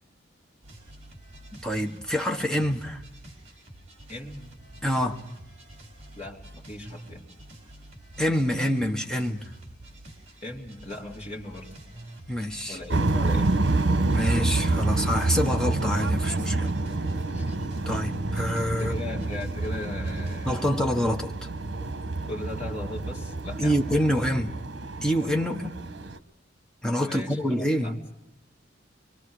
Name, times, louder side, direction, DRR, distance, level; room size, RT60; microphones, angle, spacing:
sound 1, 0.6-20.5, right 1 dB, 35° right, 4.7 m, -47 dB
voice 1, 1.5-3.0 4.8-5.2 8.2-9.4 12.3-12.8 14.1-16.7 17.8-18.9 20.5-21.3 23.6-24.5 25.0-25.8 26.8-28.0, equal, 5° left, 1.4 m, -26 dB
voice 2, 4.1-4.6 6.2-7.3 10.4-11.7 12.7-13.6 17.3-17.6 18.8-20.7 22.2-24.0 27.0-28.1, left 2 dB, 35° left, 3.9 m, -38 dB
sound 2, 12.9-26.2, right 2 dB, 65° right, 1.2 m, -28 dB
25.0 x 24.0 x 5.0 m
head